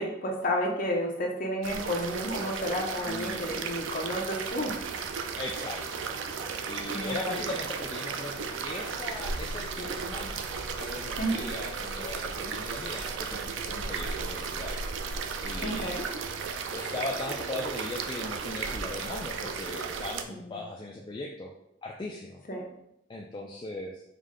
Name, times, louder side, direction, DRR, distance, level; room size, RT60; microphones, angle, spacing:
voice 1, 0.0-4.7 6.9-7.4 11.2-11.5 15.6-16.1 20.3-20.6 22.5-22.6, equal, 45° left, 0 dB, 0.7 m, -31 dB
sound 1, 1.6-20.2, right 5 dB, 90° right, 0.4 m, -35 dB
voice 2, 3.1-3.5 5.4-6.0 6.7-10.4 10.7-14.8 15.4-16.0 16.7-21.5 21.8-22.4 23.1-24.0, left 2 dB, 25° left, -1 dB, 0.3 m, -38 dB
5.0 x 2.1 x 3.7 m, 0.81 s
head